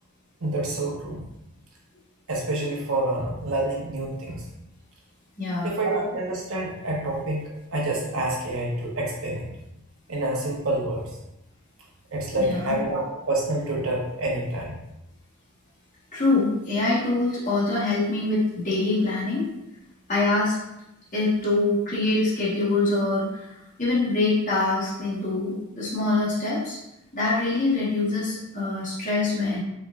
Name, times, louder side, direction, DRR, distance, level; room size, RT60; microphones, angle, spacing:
voice 1, 0.4-1.3 2.3-4.4 5.6-9.5 10.1-11.1 12.1-14.8, right 2 dB, 70° right, -2 dB, 0.9 m, -27 dB
voice 2, 5.4-5.7 12.4-12.8 16.1-19.5 20.1-20.6 21.1-23.5 23.8-26.8 27.1-29.6, left 2 dB, 35° left, -8 dB, 1.1 m, -24 dB
4.3 x 3.0 x 2.4 m, 0.87 s
head